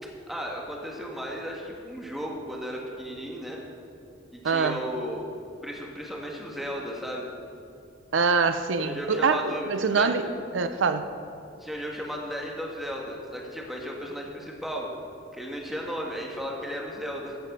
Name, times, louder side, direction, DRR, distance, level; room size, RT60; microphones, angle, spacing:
voice 1, 0.3-3.6 4.3-5.3 5.6-7.3 8.8-10.2 11.6-14.9 15.3-17.4, equal, ahead, -1 dB, 1.5 m, -35 dB
voice 2, 4.4-4.8 8.1-10.3 10.5-11.1, right 5 dB, 80° right, 10 dB, 0.6 m, -24 dB
14.0 x 7.5 x 5.3 m, 2.5 s
head